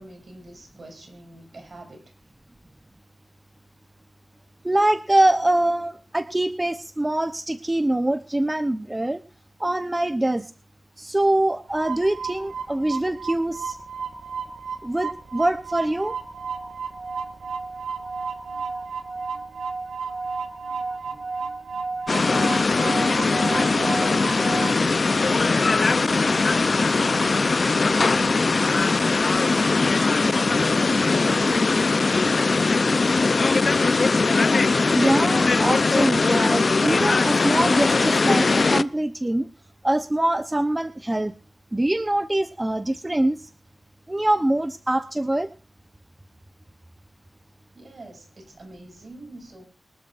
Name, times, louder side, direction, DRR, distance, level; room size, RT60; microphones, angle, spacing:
voice 1, 0.0-2.1 21.0-21.4 23.4-29.0 29.4-31.9 47.7-49.6, right 2 dB, 60° right, 4 dB, 7.0 m, -42 dB
voice 2, 4.6-9.2 9.6-10.5 11.0-13.8 14.8-16.2 34.9-39.5 39.8-41.3 41.7-43.5 44.1-45.5, right 1 dB, 20° right, 11 dB, 0.9 m, -23 dB
sound 1, 11.7-24.8, right 4 dB, 80° right, 1.4 m, -32 dB
sound 2, 22.1-38.8, left 3 dB, 55° left, 0.7 m, -20 dB
23.5 x 12.0 x 2.6 m, 0.35 s
wide cardioid pair, 70°, 0 cm